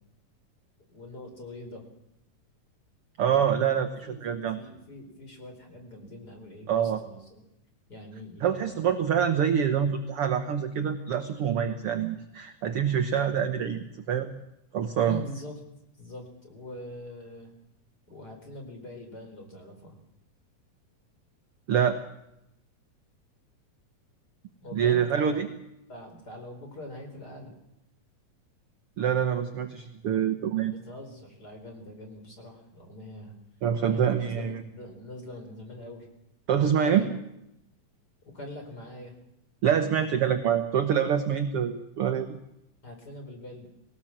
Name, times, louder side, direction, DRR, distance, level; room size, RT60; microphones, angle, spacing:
voice 1, 0.9-1.9 4.0-7.4 7.9-9.1 15.0-15.6 16.0-17.5 18.1-20.0 24.6-25.4 25.9-27.5 30.7-33.3 33.9-36.1 36.7-37.1 38.3-39.1 42.8-43.7, left 1 dB, 30° left, 3 dB, 4.7 m, -43 dB
voice 2, 3.2-4.6 6.7-7.0 8.4-14.3 14.7-15.2 21.7-22.0 24.7-25.5 29.0-30.7 33.6-34.6 36.5-37.0 39.6-42.4, right 8 dB, 60° right, 8 dB, 1.6 m, -26 dB
21.0 x 18.0 x 7.4 m, 0.83 s
omnidirectional pair, 3.8 m